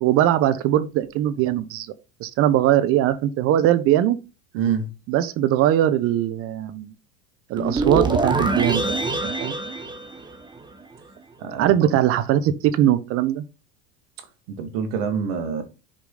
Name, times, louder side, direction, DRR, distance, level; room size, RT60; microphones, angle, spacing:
voice 1, 0.0-1.9 2.2-4.2 5.1-6.9 7.5-8.9 9.2-9.6 11.6-13.5, right 12 dB, 50° right, 1.1 m, -20 dB
voice 2, 4.5-4.9 11.4-11.9 14.6-15.6, right 6 dB, 65° right, 2.1 m, -26 dB
sound 1, 7.6-10.8, right 3 dB, 15° right, 1.3 m, -24 dB
6.3 x 5.1 x 4.0 m
hypercardioid pair, 100°, 29 cm